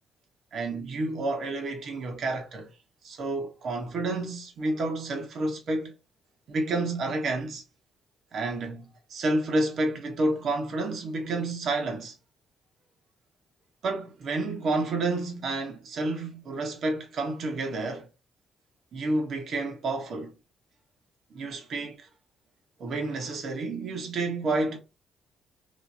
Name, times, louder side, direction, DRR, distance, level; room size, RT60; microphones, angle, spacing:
voice 1, 0.5-2.7 3.0-5.9 6.5-7.6 8.3-12.1 13.8-18.1 18.9-20.3 21.3-22.1 22.8-24.8, right 2 dB, 60° right, 1.5 m, -30 dB
3.3 x 3.0 x 4.2 m
cardioid pair, 90°, 0 cm